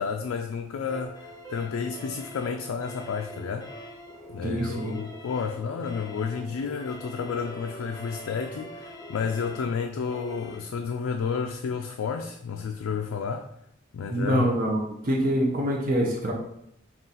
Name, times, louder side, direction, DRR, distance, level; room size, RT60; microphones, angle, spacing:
voice 1, 0.0-3.7 4.3-13.5 13.9-14.5, left 6 dB, 80° left, 5 dB, 0.3 m, -31 dB
sound 1, 0.9-10.6, equal, 20° left, 0.4 m, -43 dB
voice 2, 4.4-5.0 14.1-16.3, right 1 dB, 40° right, -1 dB, 0.5 m, -25 dB
3.8 x 2.4 x 4.0 m, 0.76 s
head